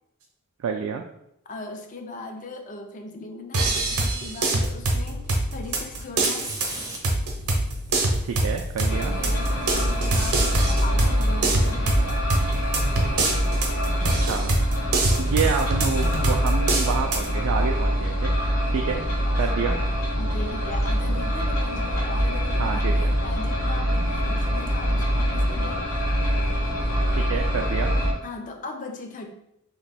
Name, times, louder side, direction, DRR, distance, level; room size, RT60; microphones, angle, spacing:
voice 1, 0.6-1.0 8.2-9.2 14.2-14.6 15.2-18.4 18.7-19.0 19.4-19.8 22.6-23.2 27.1-28.0, right 6 dB, 70° right, 3 dB, 0.3 m, -28 dB
voice 2, 1.5-6.6 9.2-12.3 19.3-22.9 23.2-25.9 28.2-29.3, left 3 dB, 35° left, 4 dB, 0.4 m, -38 dB
sound 1, 3.5-17.3, right 2 dB, 90° right, 0.7 m, -25 dB
Fire, 6.0-9.8 11.7-11.8 12.6-13.0, right 2 dB, 15° right, 0.5 m, -38 dB
sound 2, 8.9-28.1, equal, 80° left, 0.9 m, -24 dB
2.9 x 2.2 x 4.1 m, 0.78 s
head